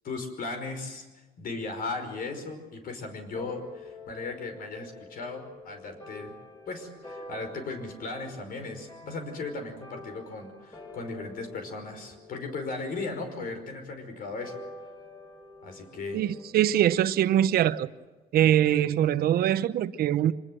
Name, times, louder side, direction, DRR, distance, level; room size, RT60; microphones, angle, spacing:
voice 1, 0.0-1.1 1.4-6.3 6.7-14.6 15.6-16.3, left 3 dB, 60° left, 5.3 m, -37 dB
sound 1, 3.3-18.1, left 2 dB, 20° left, 7.2 m, -48 dB
voice 2, 16.1-17.9 18.3-20.3, right 11 dB, 65° right, 0.9 m, -23 dB
25.0 x 20.0 x 7.8 m
cardioid pair, 110°, 17 cm